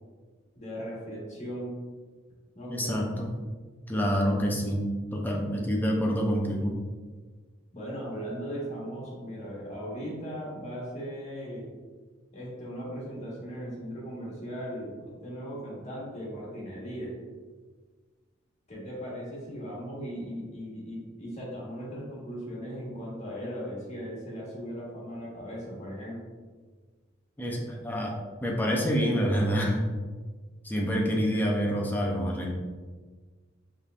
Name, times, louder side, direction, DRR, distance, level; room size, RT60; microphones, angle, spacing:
voice 1, 0.5-1.7 2.5-3.0 7.7-11.7 12.3-17.2 18.7-26.2, equal, 35° left, -5 dB, 1.4 m, -38 dB
voice 2, 2.7-3.3 3.9-6.7 27.4-28.1 28.4-29.8 30.6-32.5, equal, 10° left, -1 dB, 0.5 m, -27 dB
5.3 x 3.3 x 2.4 m, 1.4 s
head